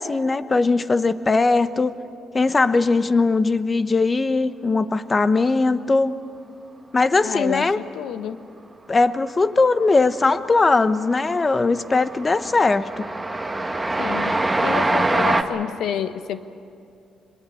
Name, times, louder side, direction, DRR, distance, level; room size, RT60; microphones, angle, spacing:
voice 1, 0.0-2.0 2.3-6.1 6.9-7.8 8.9-13.1, left 3 dB, 30° left, 13 dB, 0.9 m, -20 dB
voice 2, 7.2-8.4 14.0-14.4 14.6-16.4, left 9 dB, 80° left, 11 dB, 1.0 m, -29 dB
Train, 9.7-10.2 10.5-15.4, right 2 dB, 15° right, 1.4 m, -24 dB
23.5 x 22.0 x 8.4 m, 2.5 s
cardioid pair, 90°, 0 cm